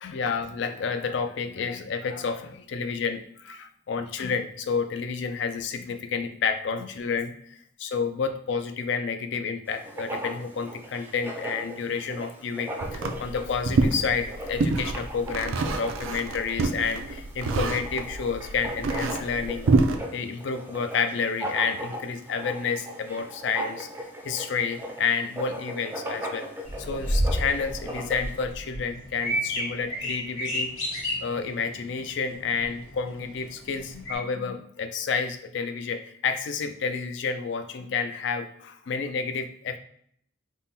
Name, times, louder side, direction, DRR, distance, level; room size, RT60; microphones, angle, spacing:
voice 1, 0.0-19.7 20.1-23.9 24.2-26.5 26.8-30.7 31.2-39.8, left 5 dB, 60° left, 8 dB, 0.4 m, -30 dB
Writing, 9.7-28.4, equal, 10° right, 0.4 m, -38 dB
sound 1, 12.8-20.0, right 3 dB, 75° right, 0.4 m, -27 dB
sound 2, 26.7-34.2, equal, 80° left, 1.3 m, -31 dB
3.5 x 2.1 x 4.1 m, 0.67 s
head